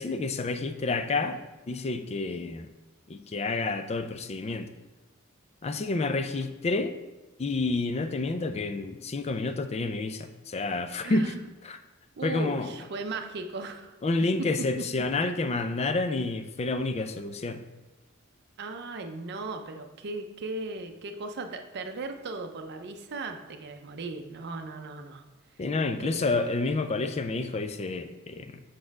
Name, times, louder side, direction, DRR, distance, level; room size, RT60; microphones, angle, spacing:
voice 1, 0.0-2.7 3.1-4.7 5.6-6.9 7.4-11.3 11.6-11.8 12.2-12.7 14.0-17.6 25.6-28.6, left 3 dB, 30° left, 9 dB, 0.4 m, -29 dB
voice 2, 11.0-11.4 12.2-13.9 18.6-25.2 26.0-26.3, right 3 dB, 50° right, 6 dB, 0.6 m, -37 dB
6.3 x 4.3 x 4.6 m, 1.1 s
head